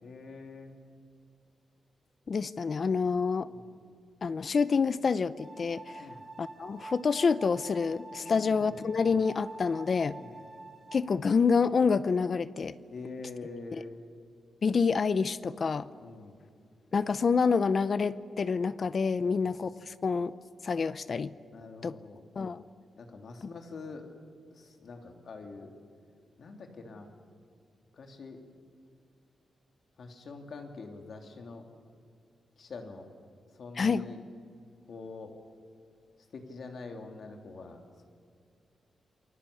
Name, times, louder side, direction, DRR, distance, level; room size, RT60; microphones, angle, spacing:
voice 1, 0.0-0.8 3.5-3.7 6.0-6.2 8.2-8.8 10.0-10.4 12.9-14.0 16.0-16.4 21.5-22.3 22.9-24.1 24.5-25.7 26.4-27.1 27.9-28.4 30.0-31.6 32.6-33.1 33.5-34.2 34.9-35.3 36.3-38.0, left 3 dB, 60° left, 3 dB, 3.1 m, -45 dB
voice 2, 2.3-3.5 4.2-6.0 6.4-10.2 10.9-12.8 14.6-15.9 16.9-20.3 20.6-21.3 21.8-22.0 22.4-22.6 33.8-34.0, left 5 dB, 45° left, 15 dB, 0.7 m, -27 dB
sound 1, 5.4-11.0, right 2 dB, 25° right, 2.5 m, -48 dB
28.0 x 22.5 x 8.6 m, 2.3 s
wide cardioid pair, 140°, 0 cm